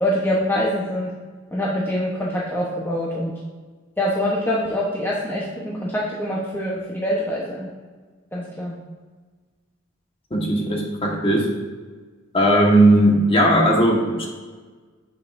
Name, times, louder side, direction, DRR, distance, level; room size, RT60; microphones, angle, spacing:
voice 1, 0.0-1.1 1.5-3.3 4.0-7.7 8.3-8.8, left 1 dB, 10° left, -6 dB, 1.0 m, -24 dB
voice 2, 10.3-11.5 12.3-14.3, right 1 dB, 30° left, -1 dB, 1.5 m, -17 dB
9.2 x 7.4 x 2.6 m, 1.4 s
head